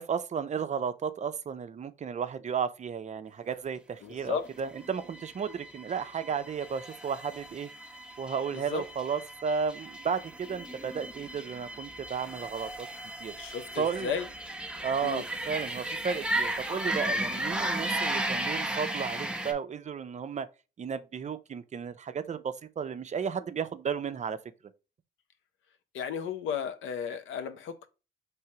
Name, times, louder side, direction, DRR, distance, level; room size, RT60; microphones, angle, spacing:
voice 1, 0.0-7.7 8.2-12.9 13.2-13.3 13.8-14.1 14.8-20.5 20.8-24.4, right 6 dB, 35° right, 0.5 m, -33 dB
voice 2, 4.0-4.5 8.5-8.8 13.4-14.3 15.0-15.3 25.9-27.9, left 7 dB, 80° left, 0.7 m, -34 dB
sound 1, 4.5-19.5, right 1 dB, 5° right, 0.7 m, -35 dB
4.5 x 3.3 x 2.8 m
cardioid pair, 90°, 20 cm